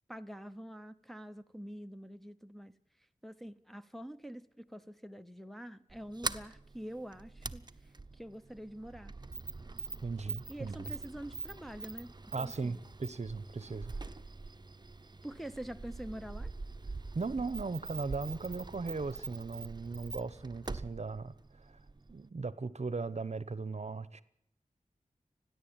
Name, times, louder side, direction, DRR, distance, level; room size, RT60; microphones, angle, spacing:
voice 1, 0.1-2.8 3.2-9.2 10.5-12.1 12.4-12.8 15.2-16.5, right 1 dB, ahead, 0.9 m, -46 dB
Sliding door, 5.9-22.3, right 3 dB, 30° right, 0.9 m, -44 dB
voice 2, 10.0-10.9 12.3-14.0 17.1-21.8 22.1-24.2, right 4 dB, 55° right, 1.0 m, -38 dB
29.5 x 11.0 x 8.9 m
wide cardioid pair, 80°, 14 cm